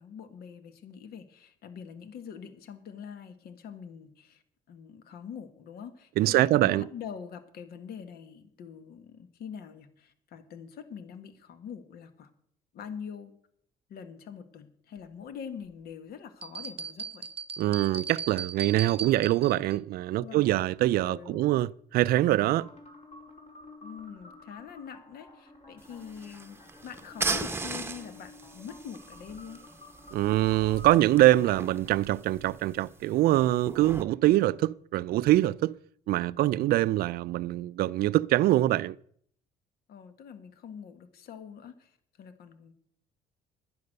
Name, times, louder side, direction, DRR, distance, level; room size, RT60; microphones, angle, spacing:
voice 1, 0.0-4.4 4.7-12.3 12.7-13.3 13.9-17.3 20.2-20.6 21.1-21.6 23.8-29.6 39.9-41.9 42.2-42.7, left 7 dB, 65° left, 1.5 m, -44 dB
voice 2, 6.2-6.9 17.6-22.7 30.1-35.7 36.1-39.0, right 15 dB, 65° right, 0.4 m, -24 dB
sound 1, 16.4-19.8, right 6 dB, 35° right, 0.7 m, -38 dB
sound 2, 22.2-31.2, left 2 dB, 45° left, 4.4 m, -51 dB
sound 3, 25.8-34.0, right 3 dB, 15° right, 0.9 m, -38 dB
11.0 x 10.5 x 6.5 m
cardioid pair, 110°, 17 cm